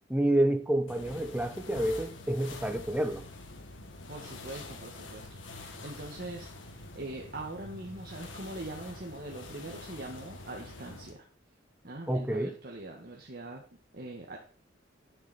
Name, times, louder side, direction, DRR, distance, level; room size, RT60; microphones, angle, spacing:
voice 1, 0.1-3.2 12.1-12.5, right 1 dB, 10° right, 1.1 m, -28 dB
sound 1, 0.9-11.2, left 2 dB, 85° left, 2.1 m, -46 dB
voice 2, 4.1-11.2 11.8-13.6 13.9-14.4, right 2 dB, 55° right, 1.7 m, -42 dB
11.0 x 10.0 x 4.3 m
head